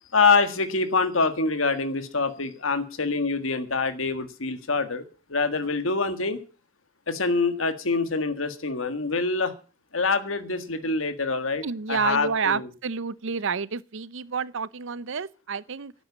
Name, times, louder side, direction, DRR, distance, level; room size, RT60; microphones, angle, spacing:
voice 1, 0.1-5.0 5.3-6.4 7.1-9.5 9.9-12.7, left 4 dB, 80° left, 1.7 m, -25 dB
voice 2, 11.6-15.9, right 5 dB, 70° right, 0.7 m, -29 dB
12.0 x 9.2 x 8.4 m
head